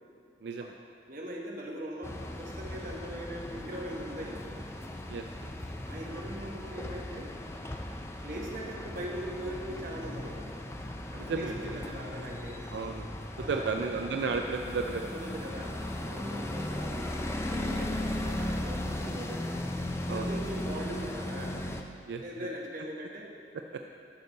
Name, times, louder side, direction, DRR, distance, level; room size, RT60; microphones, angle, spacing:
voice 1, 0.4-0.7 5.1-5.2 11.2-11.8 12.7-13.1 13.5-15.1 20.1-20.3 22.1-22.5, right 4 dB, 80° right, 4 dB, 0.4 m, -33 dB
voice 2, 1.1-4.5 5.9-7.3 8.2-10.5 11.1-12.7 13.4-13.8 15.1-17.1 17.5-19.5 20.1-21.6 22.2-23.3, equal, 50° right, -1 dB, 1.2 m, -40 dB
sound 1, 2.0-21.8, left 1 dB, 15° left, 0.4 m, -37 dB
11.0 x 6.9 x 4.0 m, 2.4 s
head